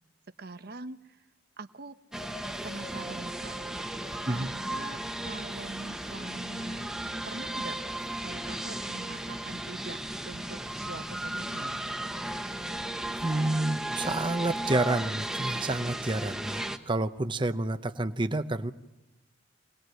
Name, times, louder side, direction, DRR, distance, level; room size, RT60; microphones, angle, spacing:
voice 1, 0.4-1.3 1.6-1.9 2.6-3.8 4.3-6.9 7.2-7.8 8.2-10.0 10.2-11.7, right 3 dB, 55° right, 10 dB, 1.0 m, -43 dB
sound 1, 2.1-16.8, right 1 dB, 5° right, 1.2 m, -35 dB
voice 2, 13.2-18.7, right 2 dB, 25° right, 9 dB, 0.8 m, -29 dB
24.5 x 20.0 x 7.9 m, 0.99 s
head